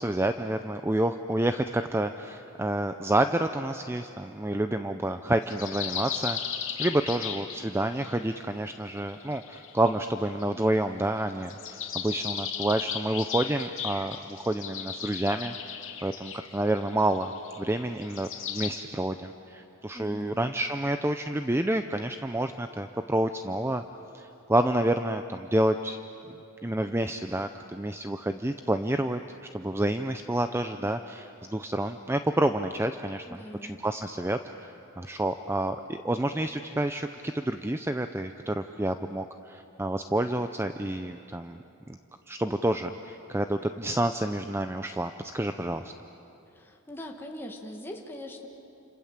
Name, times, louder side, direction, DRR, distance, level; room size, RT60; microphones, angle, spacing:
voice 1, 0.0-6.4 6.8-15.5 16.0-17.3 17.6-23.8 24.1-26.0 26.6-29.2 29.5-41.6 41.9-42.0 42.3-45.9, right 1 dB, 10° right, 8 dB, 0.5 m, -29 dB
sound 1, 5.5-8.2 9.0-10.7 11.4-18.7, left 8 dB, 60° left, 2.5 m, -36 dB
voice 2, 19.9-20.4 33.3-33.8 46.5-48.5, left 1 dB, 10° left, 1 dB, 1.9 m, -41 dB
29.0 x 27.0 x 7.4 m, 2.9 s
head